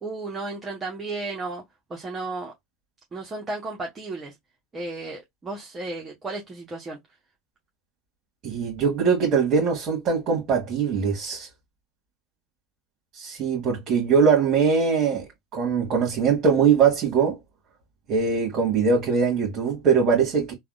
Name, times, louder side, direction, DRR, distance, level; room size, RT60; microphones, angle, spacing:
voice 1, 0.0-1.6 1.9-2.5 3.1-4.3 4.7-7.0, right 3 dB, 25° right, 0.9 m, -33 dB
voice 2, 8.4-11.5 13.1-17.4 18.1-20.5, right 6 dB, 45° right, 1.5 m, -22 dB
3.3 x 2.3 x 2.4 m
hypercardioid pair, 100°, 0 cm